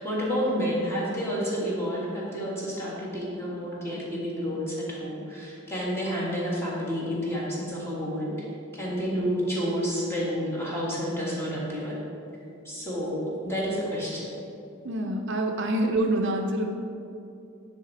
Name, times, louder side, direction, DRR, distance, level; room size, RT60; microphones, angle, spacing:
voice 1, 0.0-8.5 8.7-12.0 12.6-14.3, equal, 15° left, -6 dB, 1.6 m, -30 dB
voice 2, 14.8-16.7, right 1 dB, 60° right, 3 dB, 0.6 m, -26 dB
10.0 x 3.6 x 4.1 m, 2.6 s
head